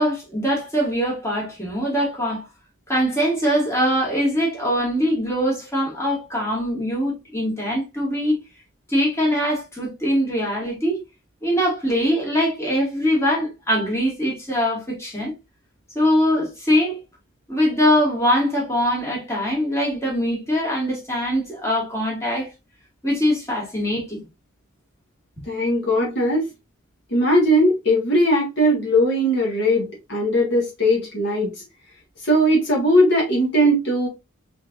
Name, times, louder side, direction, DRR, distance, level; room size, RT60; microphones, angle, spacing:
voice 1, 0.0-2.4 2.9-8.4 8.9-11.0 11.4-15.3 15.9-17.0 17.5-22.5 23.0-24.2, equal, 15° left, 2.0 m, -22 dB
voice 2, 25.5-26.5 27.1-31.5 32.2-34.1, equal, 55° left, 1.5 m, -19 dB
4.3 x 3.7 x 2.4 m
head